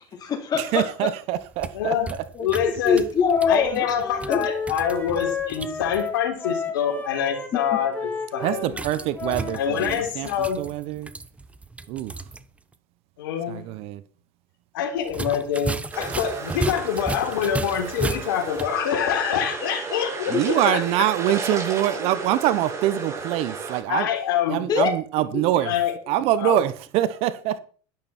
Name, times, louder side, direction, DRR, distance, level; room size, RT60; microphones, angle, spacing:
voice 1, 0.0-0.8 2.3-4.0 4.3-4.5 20.3-20.8 24.7-24.9 25.3-25.4, left 6 dB, 35° left, 3.8 m, -23 dB
voice 2, 0.6-1.9 8.4-11.1 11.9-12.1 13.5-14.0 20.3-24.1 24.5-25.8 26.1-27.6, right 13 dB, 60° right, 1.1 m, -24 dB
sound 1, 1.3-6.1 8.7-12.4 12.7-12.8 15.0-18.8, right 3 dB, 10° right, 1.0 m, -34 dB
voice 3, 1.7-2.1 2.4-3.0 3.5-8.8 9.5-10.6 13.2-13.7 14.7-21.4 22.0-22.1 23.9-24.6 25.6-25.9 26.4-26.6, left 8 dB, 85° left, 3.7 m, -26 dB
Wind instrument woodwind instrument, 3.2-9.6, left 5 dB, 15° left, 3.0 m, -33 dB
sound 2, 15.9-23.8, right 4 dB, 25° right, 7.3 m, -34 dB
12.5 x 11.5 x 4.4 m
supercardioid pair, 110°, 11 cm